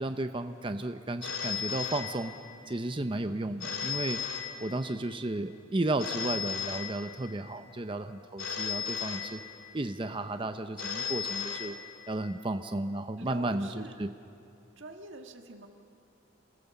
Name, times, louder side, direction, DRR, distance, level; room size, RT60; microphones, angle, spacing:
voice 1, 0.0-2.3 2.7-4.2 4.6-9.4 9.7-11.8 12.1-14.1, right 2 dB, 25° right, 8 dB, 0.6 m, -33 dB
Telephone, 1.2-2.7 3.6-5.1 6.0-7.5 8.4-9.9 10.8-12.3, left 7 dB, 80° left, 2.7 m, -36 dB
voice 2, 13.2-14.0 14.8-15.7, right 2 dB, 60° right, 4 dB, 1.7 m, -45 dB
28.5 x 18.0 x 7.0 m, 2.7 s
head